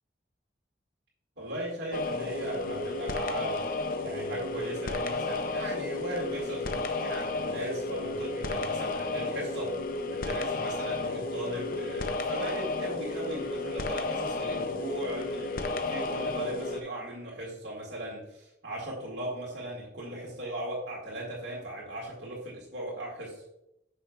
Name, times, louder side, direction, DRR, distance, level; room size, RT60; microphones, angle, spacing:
voice 1, 1.4-3.7 4.0-9.7 10.1-23.4, right 1 dB, 90° right, -4 dB, 2.0 m, -38 dB
sound 1, 1.9-16.8, left 3 dB, 50° left, 0.6 m, -32 dB
9.0 x 6.3 x 2.4 m, 0.85 s
head